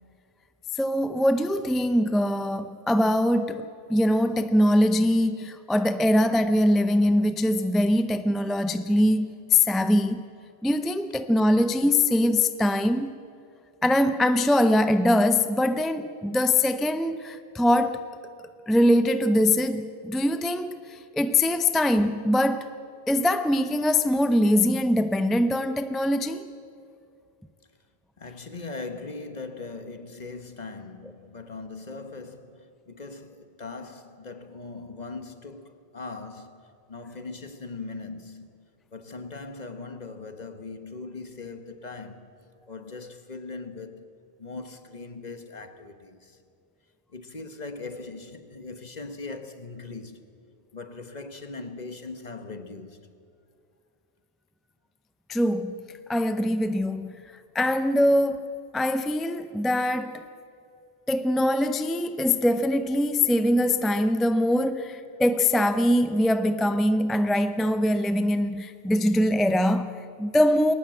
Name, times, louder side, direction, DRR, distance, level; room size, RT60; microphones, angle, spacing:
voice 1, 0.8-10.2 10.6-13.1 13.8-18.0 18.7-22.7 23.1-26.5 55.3-55.8 56.1-57.1 57.5-60.2 61.1-70.7, left 1 dB, ahead, 0.5 m, -23 dB
voice 2, 28.2-38.5 38.9-42.3 42.7-44.1 44.4-46.4 47.1-50.2 50.7-53.0, left 3 dB, 45° left, 1.4 m, -40 dB
22.0 x 19.5 x 7.6 m
omnidirectional pair, 1.1 m